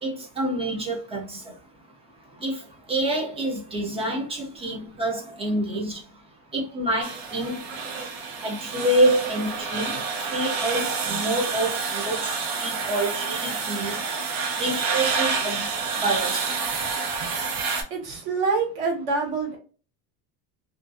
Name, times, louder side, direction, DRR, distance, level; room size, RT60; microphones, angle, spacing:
voice 1, 0.0-1.4 2.4-2.6 2.9-6.0 6.5-7.6 8.4-9.9 10.3-12.3 12.6-14.0 14.6-15.6 16.0-16.5, right 1 dB, 15° right, 0.3 m, -27 dB
sound 1, 7.0-17.8, right 5 dB, 75° right, 0.8 m, -28 dB
voice 2, 17.9-19.6, right 4 dB, 60° right, 1.1 m, -26 dB
2.4 x 2.3 x 2.5 m
cardioid pair, 150°, 45 cm